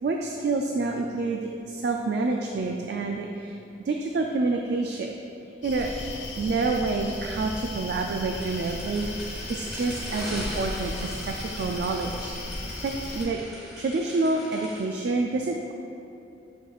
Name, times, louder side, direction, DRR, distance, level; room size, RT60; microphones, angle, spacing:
voice 1, 0.0-3.6 3.9-5.1 5.6-5.9 6.4-12.3 12.8-13.4 13.8-15.7, right 3 dB, 60° right, 2 dB, 0.3 m, -28 dB
sound 1, 5.6-13.2, left 1 dB, 85° left, 1.2 m, -36 dB
sound 2, 8.3-14.8, equal, ahead, 1.0 m, -40 dB
9.0 x 4.5 x 2.4 m, 2.8 s
head